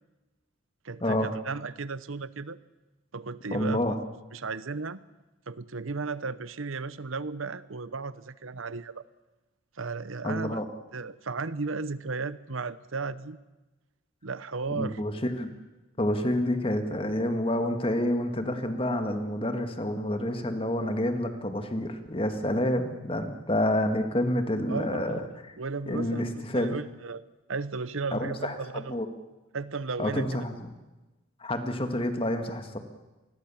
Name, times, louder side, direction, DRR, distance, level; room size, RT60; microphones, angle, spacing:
voice 1, 0.8-2.6 3.1-4.0 4.3-5.0 5.5-9.0 9.8-10.6 10.9-13.4 14.2-15.0 24.7-25.3 25.6-27.2 27.5-29.0 29.5-30.3, right 4 dB, 75° right, 16 dB, 0.9 m, -35 dB
voice 2, 3.5-4.0 10.2-10.6 14.7-15.5 16.0-25.2 25.9-26.7 28.1-29.1 30.0-30.7 31.4-32.8, left 1 dB, 25° left, 7 dB, 2.0 m, -28 dB
26.5 x 20.5 x 7.2 m, 1.1 s
head